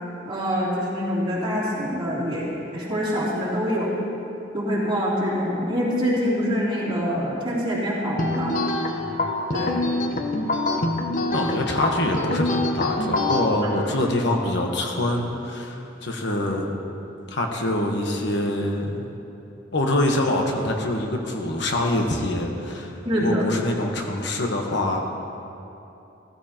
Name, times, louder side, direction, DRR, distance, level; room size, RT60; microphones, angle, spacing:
voice 1, 0.2-3.9 4.5-8.5 9.5-9.8 23.0-23.4, equal, 30° right, -8 dB, 3.2 m, -25 dB
sound 1, 8.2-13.5, left 2 dB, 45° left, 0.9 m, -25 dB
voice 2, 8.9-9.3 11.3-16.8 17.3-19.1 19.7-25.0, left 1 dB, 65° left, 1 dB, 1.2 m, -25 dB
15.0 x 14.5 x 3.0 m, 2.9 s
head